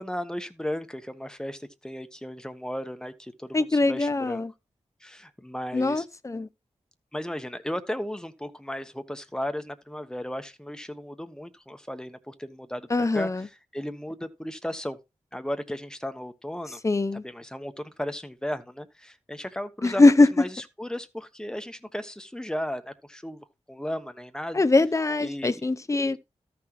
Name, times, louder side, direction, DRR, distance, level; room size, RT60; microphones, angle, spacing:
voice 1, 0.0-4.4 5.0-6.1 7.1-15.0 15.3-16.8 17.1-24.6 25.2-25.7 26.1-26.2, equal, 5° left, 1.1 m, -35 dB
voice 2, 3.5-4.5 5.7-6.5 12.9-13.5 16.8-17.2 19.8-20.3 24.5-26.2, left 2 dB, 25° left, 0.6 m, -21 dB
13.5 x 5.9 x 3.0 m
wide cardioid pair, 90°, 12 cm